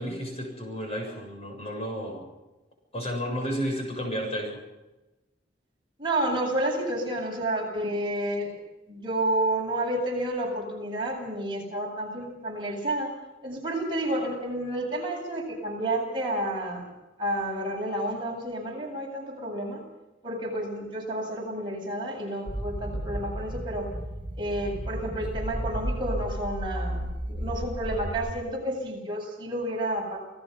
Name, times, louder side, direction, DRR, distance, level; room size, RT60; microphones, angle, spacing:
voice 1, 0.0-2.3 2.9-4.5, equal, 35° left, 2 dB, 7.3 m, -32 dB
voice 2, 6.0-8.5 8.9-13.1 13.4-16.9 17.2-19.8 20.2-23.9 24.3-30.2, right 1 dB, 30° right, -2 dB, 7.9 m, -30 dB
sound 1, 22.5-28.3, right 1 dB, 10° right, 3.2 m, -33 dB
29.0 x 18.5 x 5.7 m, 1.0 s
head